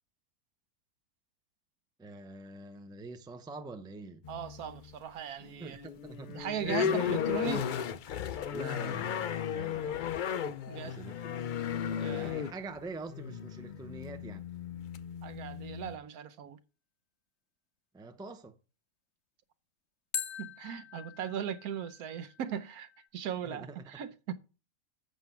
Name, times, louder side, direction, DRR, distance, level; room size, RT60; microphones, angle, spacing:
voice 1, 2.0-4.2 5.6-6.4 6.7-7.1 8.5-10.0 10.8-11.4 12.1-14.5 17.9-18.6 23.4-24.0, right 3 dB, 5° right, 0.4 m, -45 dB
sound 1, 4.2-4.9 5.4-16.0, left 8 dB, 90° left, 0.4 m, -35 dB
voice 2, 4.3-5.8 6.3-7.7 10.7-11.0 12.0-12.4 15.2-16.6 20.4-24.3, right 9 dB, 80° right, 1.2 m, -38 dB
sound 2, 12.7-13.1 20.1-23.1, left 8 dB, 55° left, 1.0 m, -43 dB
7.8 x 6.3 x 5.8 m
omnidirectional pair, 1.6 m